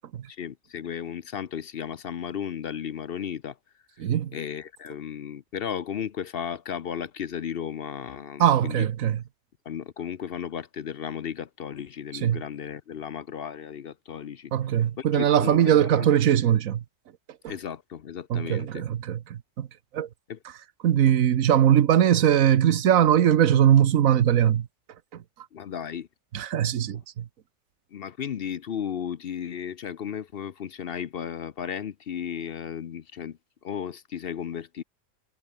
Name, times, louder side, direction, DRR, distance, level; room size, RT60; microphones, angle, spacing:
voice 1, 0.3-3.6 4.0-4.1 4.3-8.9 9.6-14.5 15.0-16.1 17.5-18.8 20.3-20.4 25.5-26.1 27.9-34.8, left 8 dB, 55° left, 0.8 m, -34 dB
voice 2, 4.0-4.3 8.4-9.2 12.2-12.4 14.5-16.8 18.3-19.7 19.9-20.1 20.8-24.7 26.3-27.2, right 10 dB, 90° right, 1.3 m, -21 dB
omnidirectional pair, 1.4 m